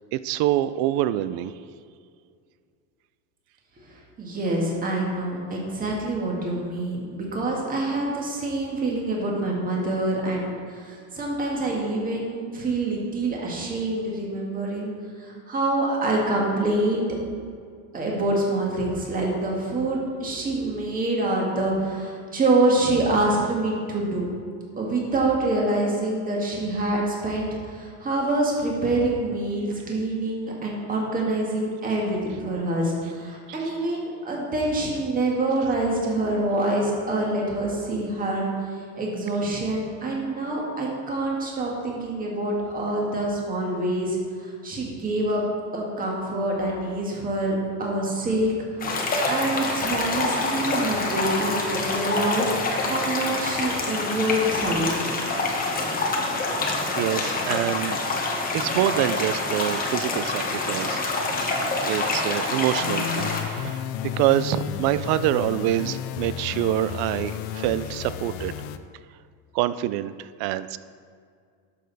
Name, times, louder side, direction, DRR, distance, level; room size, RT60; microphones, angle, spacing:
voice 1, 0.1-1.5 57.0-58.0 58.5-68.6 69.5-70.8, right 13 dB, 65° right, 15 dB, 0.5 m, -26 dB
voice 2, 3.9-14.9 15.2-17.2 17.9-24.3 24.8-38.5 39.0-45.4 45.7-48.5 48.8-52.5 52.9-55.1, right 2 dB, 20° right, -2 dB, 1.8 m, -26 dB
Stream of River Water, 48.8-63.4, left 3 dB, 20° left, 1.1 m, -26 dB
sound 1, 62.8-68.8, left 10 dB, 60° left, 0.6 m, -32 dB
11.5 x 6.7 x 4.1 m, 2.2 s
cardioid pair, 150°, 40 cm